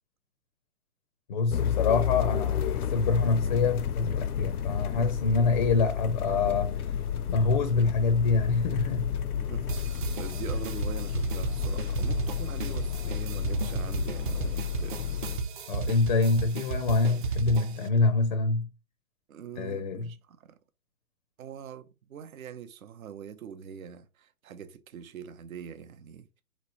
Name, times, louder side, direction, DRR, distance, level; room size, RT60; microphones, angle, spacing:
voice 1, 1.3-6.9 7.3-9.2 15.7-18.7 19.6-20.1, left 4 dB, 35° left, 0.4 m, -26 dB
sound 1, 1.5-15.4, left 8 dB, 75° left, 0.6 m, -31 dB
voice 2, 9.4-15.4 19.3-20.5 21.4-26.4, right 8 dB, 65° right, 0.7 m, -43 dB
sound 2, 9.7-17.9, right 4 dB, 35° right, 0.5 m, -34 dB
4.2 x 3.0 x 4.0 m
figure-of-eight pair, 125°, 45 cm